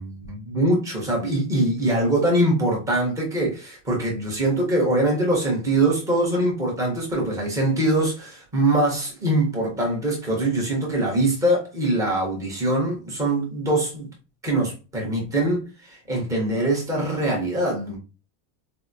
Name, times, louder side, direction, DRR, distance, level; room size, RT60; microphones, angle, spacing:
voice 1, 0.0-14.1 14.4-18.0, right 1 dB, 10° right, 0.3 m, -23 dB
4.2 x 2.2 x 2.4 m
cardioid pair, 170°, 49 cm